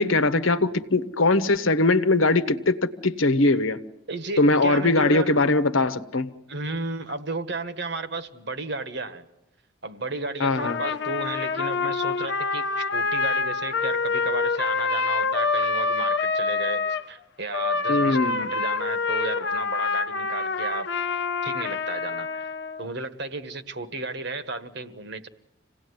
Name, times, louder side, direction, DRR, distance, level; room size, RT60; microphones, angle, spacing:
voice 1, 0.0-3.8 4.4-6.3 10.4-10.8 17.9-18.4, left 2 dB, 80° left, 1.2 m, -21 dB
voice 2, 4.1-5.4 6.5-9.3 9.8-20.9 21.4-22.5 22.8-25.3, right 3 dB, 55° right, 1.4 m, -33 dB
Trumpet, 10.6-17.0 17.5-22.8, left 4 dB, 55° left, 0.9 m, -26 dB
26.5 x 18.0 x 9.6 m
head